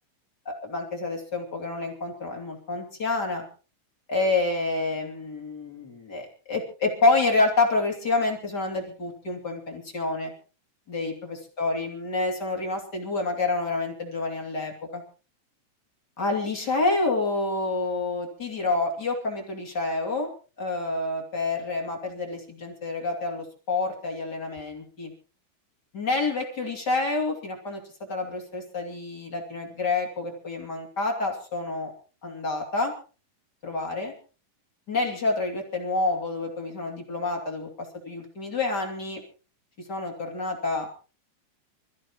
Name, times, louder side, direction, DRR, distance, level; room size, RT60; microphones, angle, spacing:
voice 1, 0.4-3.4 4.1-10.3 10.9-15.0 16.2-20.3 20.6-25.1 25.9-27.8 28.1-31.9 32.2-32.9 33.6-34.1 34.9-37.7 38.0-39.2 39.9-40.9, left 3 dB, 30° left, 1 dB, 3.0 m, -28 dB
26.5 x 14.5 x 3.0 m, 0.35 s
omnidirectional pair, 3.9 m